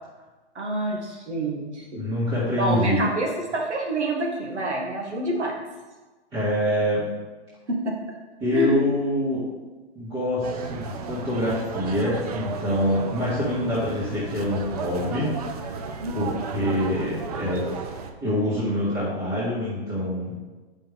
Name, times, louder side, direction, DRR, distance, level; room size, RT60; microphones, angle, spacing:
voice 1, 0.6-2.0 2.6-5.5 7.7-7.9 8.5-8.8 16.0-16.3, right 1 dB, 90° right, -1 dB, 2.0 m, -27 dB
voice 2, 1.9-3.0 6.3-7.0 8.4-9.4 10.0-15.4 16.1-17.8 18.2-20.4, left 1 dB, 15° right, -11 dB, 1.9 m, -25 dB
sound 1, 10.4-18.1, right 5 dB, 35° right, 0.6 m, -34 dB
7.6 x 5.6 x 3.6 m, 1.2 s
hypercardioid pair, 150°, 33 cm